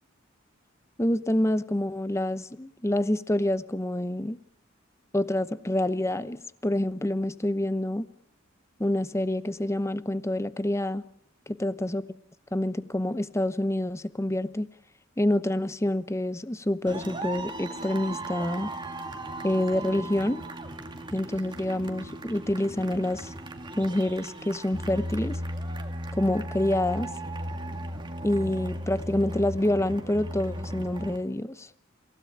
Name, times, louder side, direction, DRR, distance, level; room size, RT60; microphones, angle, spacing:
voice 1, 1.0-4.4 5.1-8.1 8.8-11.0 11.5-12.0 12.5-14.7 15.2-18.7 19.4-20.4 21.1-23.3 23.8-25.4 26.1-27.1 28.2-31.7, left 1 dB, 15° left, 14 dB, 0.9 m, -27 dB
sound 1, 16.9-31.2, right 1 dB, 25° right, 2.1 m, -36 dB
27.5 x 16.5 x 8.6 m, 0.75 s
head